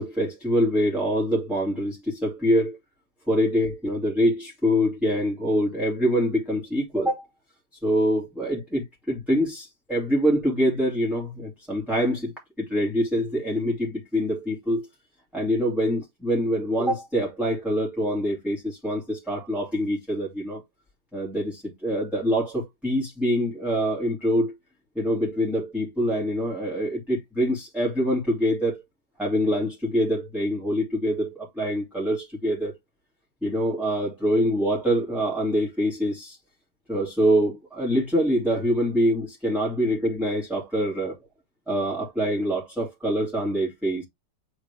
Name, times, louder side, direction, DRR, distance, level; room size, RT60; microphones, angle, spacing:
voice 1, 0.0-2.8 3.3-7.3 7.8-12.3 12.6-14.9 15.3-20.6 21.1-24.6 24.9-28.8 29.2-32.8 33.4-36.4 36.9-41.1 41.7-44.0, equal, ahead, 2.4 m, -25 dB
8.2 x 3.8 x 3.4 m
omnidirectional pair, 1.8 m